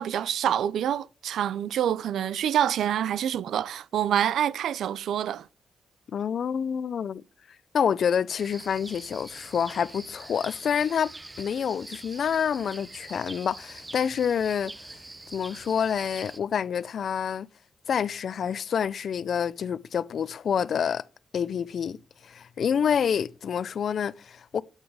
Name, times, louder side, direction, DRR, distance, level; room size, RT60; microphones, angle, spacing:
voice 1, 0.0-5.5, right 10 dB, 85° right, 0.5 m, -26 dB
voice 2, 6.1-7.2 7.7-11.1 11.4-14.7 15.3-17.5 17.9-21.0 21.3-22.0 22.2-24.6, left 7 dB, 60° left, 0.5 m, -27 dB
sound 1, 8.4-16.4, right 2 dB, 15° right, 0.6 m, -44 dB
9.1 x 8.7 x 4.8 m
cardioid pair, 120°, 0 cm